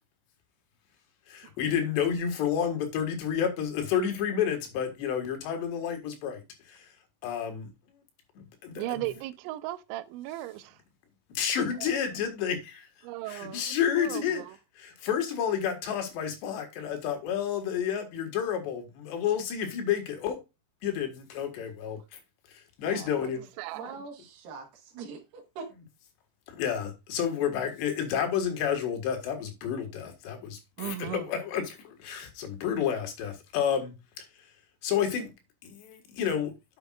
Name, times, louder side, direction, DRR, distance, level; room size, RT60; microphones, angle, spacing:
voice 1, 1.3-6.9 7.2-7.7 8.4-9.1 11.4-12.9 13.3-14.4 14.8-20.4 20.8-22.0 22.8-23.4 26.5-34.3 34.8-35.3 35.6-36.5, left 8 dB, 75° left, 3.6 m, -30 dB
voice 2, 8.8-10.8 11.8-11.9 13.0-13.7 14.0-14.6 22.8-23.3 23.6-23.9 30.8-31.3, right 15 dB, 85° right, 2.9 m, -37 dB
voice 3, 23.7-25.7, right 4 dB, 60° right, 3.1 m, -43 dB
9.8 x 7.3 x 2.4 m
omnidirectional pair, 5.3 m